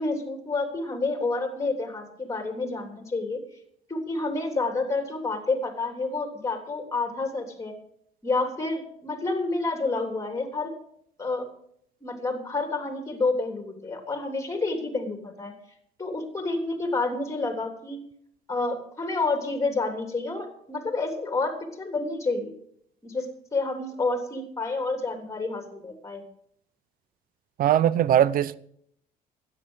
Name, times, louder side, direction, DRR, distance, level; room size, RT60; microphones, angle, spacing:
voice 1, 0.0-3.4 3.9-7.7 8.2-10.7 11.2-11.5 12.0-15.5 16.0-18.0 18.5-22.5 23.0-26.2, left 3 dB, 20° left, 3.2 m, -29 dB
voice 2, 27.6-28.5, right 11 dB, 55° right, 0.6 m, -20 dB
13.0 x 9.9 x 6.4 m
cardioid pair, 110°, 17 cm